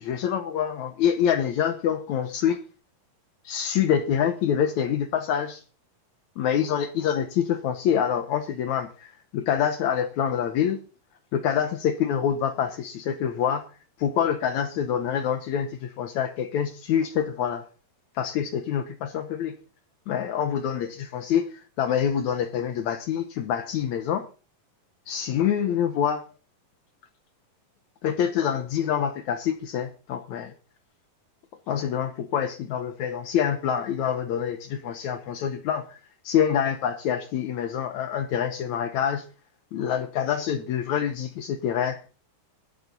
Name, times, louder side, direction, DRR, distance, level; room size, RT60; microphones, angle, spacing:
voice 1, 0.0-2.6 3.5-5.6 6.4-10.8 11.3-13.6 14.0-17.7 18.2-19.6 20.1-24.3 25.1-26.3 28.0-30.5 31.7-36.0 36.2-39.3 39.7-42.0, left 8 dB, 70° left, 2.0 m, -26 dB
14.5 x 12.0 x 4.0 m
omnidirectional pair, 4.0 m